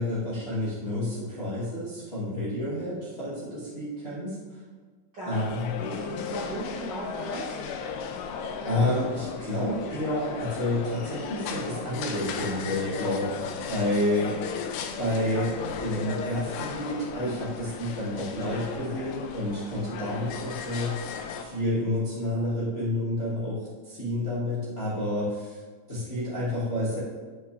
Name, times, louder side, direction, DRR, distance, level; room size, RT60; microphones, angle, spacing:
voice 1, 0.0-4.4 5.2-5.8 8.6-14.4 15.0-21.1 21.4-25.6 25.9-27.0, left 1 dB, 65° left, -9 dB, 0.6 m, -29 dB
voice 2, 5.1-5.4 5.8-7.6, right 1 dB, 70° right, -9 dB, 1.0 m, -36 dB
sound 1, 5.3-21.5, left 6 dB, 85° left, 2.7 m, -36 dB
12.5 x 5.7 x 3.3 m, 1.4 s
omnidirectional pair, 5.1 m